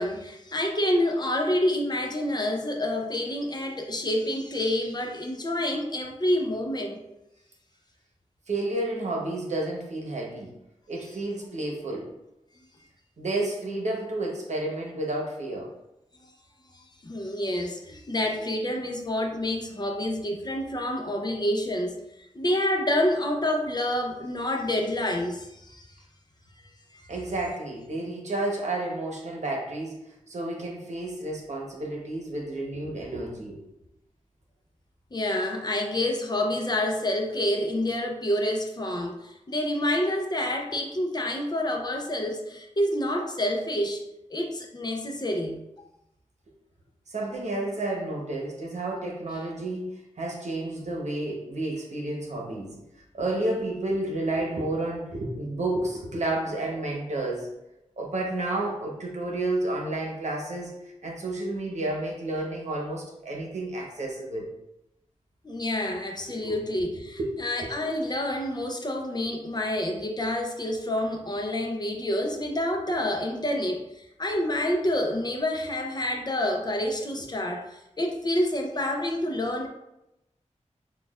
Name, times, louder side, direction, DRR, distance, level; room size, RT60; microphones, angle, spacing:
voice 1, 0.0-7.0 16.7-22.0 22.3-25.9 26.9-27.1 35.1-44.0 44.3-45.6 65.4-79.7, left 1 dB, 35° left, 2 dB, 0.5 m, -28 dB
voice 2, 8.5-10.5 10.9-12.1 13.2-15.7 27.1-33.6 47.1-52.8 53.1-57.5 58.0-64.5 66.4-66.5 67.1-67.7, right 2 dB, 70° right, -1 dB, 0.9 m, -31 dB
5.9 x 2.3 x 2.4 m, 0.88 s
wide cardioid pair, 95°, 12 cm